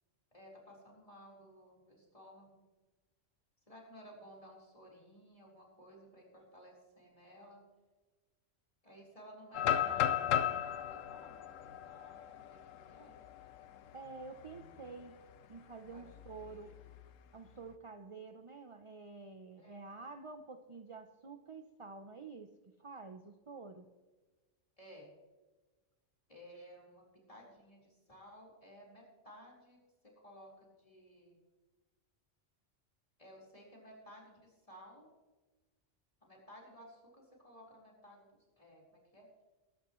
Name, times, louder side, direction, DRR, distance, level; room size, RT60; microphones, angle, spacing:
voice 1, 0.3-2.6 3.7-7.6 8.8-13.2 15.9-16.8 19.6-20.0 24.8-25.1 26.3-29.8 30.2-31.4 33.2-35.1 36.2-38.3 38.6-39.3, equal, 25° left, -3 dB, 4.5 m, -56 dB
sound 1, 9.5-13.5 13.9-14.0 14.5-14.8 16.1-17.0, left 10 dB, 90° left, 1.1 m, -35 dB
voice 2, 13.9-15.2 15.5-16.7 17.3-22.5 22.8-23.9, right 4 dB, 30° right, 7 dB, 0.7 m, -49 dB
23.0 x 11.5 x 3.2 m, 1.2 s
omnidirectional pair, 1.3 m